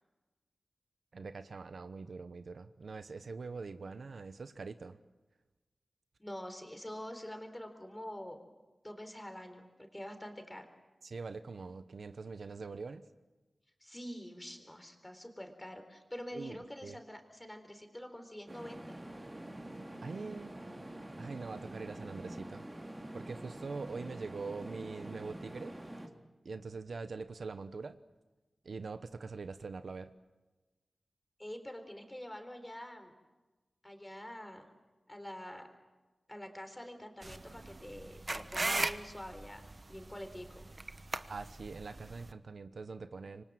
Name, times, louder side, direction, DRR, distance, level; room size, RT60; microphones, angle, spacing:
voice 1, 1.1-5.0 11.0-13.1 16.3-17.0 20.0-20.5 21.2-22.6 23.1-25.8 26.4-28.0 28.6-30.1 41.3-43.4, right 4 dB, 75° right, 11 dB, 1.1 m, -43 dB
voice 2, 6.2-8.5 8.8-10.7 13.8-19.0 31.4-33.2 33.8-34.7 35.1-35.7 36.3-40.7, equal, 15° left, 6 dB, 4.1 m, -46 dB
sound 1, 18.5-26.1, right 1 dB, 20° right, 2.8 m, -46 dB
sound 2, 37.2-42.3, right 2 dB, 35° right, 1.1 m, -38 dB
26.5 x 24.5 x 7.7 m, 1.2 s
wide cardioid pair, 90°, 0 cm